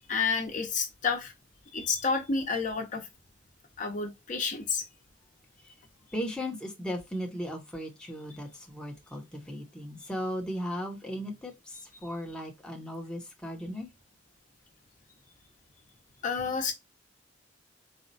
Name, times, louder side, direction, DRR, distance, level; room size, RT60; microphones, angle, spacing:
voice 1, 0.0-1.3 1.7-3.1 3.8-4.8 16.2-16.7, left 5 dB, 40° left, 0.8 m, -30 dB
voice 2, 6.1-13.9, equal, 5° left, 0.8 m, -36 dB
4.2 x 2.3 x 4.0 m
head